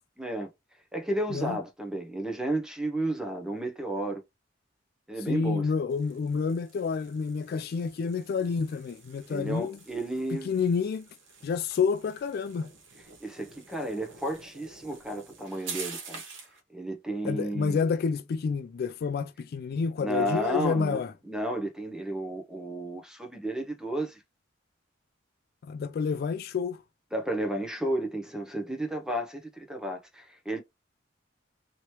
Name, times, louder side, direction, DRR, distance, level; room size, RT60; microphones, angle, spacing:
voice 1, 0.2-0.5 0.9-4.2 5.1-5.7 9.3-10.5 13.2-16.2 16.7-17.8 20.0-24.2 27.1-30.6, right 1 dB, 5° right, 0.8 m, -32 dB
voice 2, 5.3-9.8 10.3-11.1 11.4-12.7 17.3-21.1 25.6-26.8, left 5 dB, 55° left, 0.3 m, -29 dB
sound 1, 5.9-16.6, right 5 dB, 85° right, 1.2 m, -47 dB
3.0 x 2.9 x 3.0 m
head